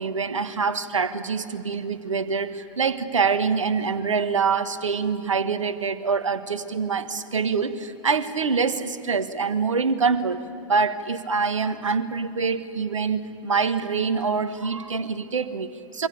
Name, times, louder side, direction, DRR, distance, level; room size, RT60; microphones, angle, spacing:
voice 1, 0.0-16.1, right 5 dB, 75° right, 13 dB, 1.4 m, -25 dB
26.5 x 24.0 x 8.4 m, 2.5 s
figure-of-eight pair, 90°, 16 cm